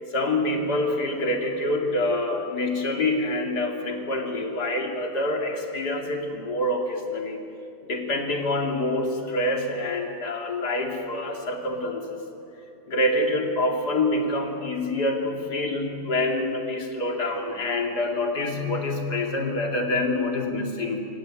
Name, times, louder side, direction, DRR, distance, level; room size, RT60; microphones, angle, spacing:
voice 1, 0.1-7.4 7.9-12.2 12.9-21.1, left 1 dB, 80° left, 2 dB, 3.2 m, -26 dB
26.0 x 17.0 x 8.8 m, 2.6 s
omnidirectional pair, 1.7 m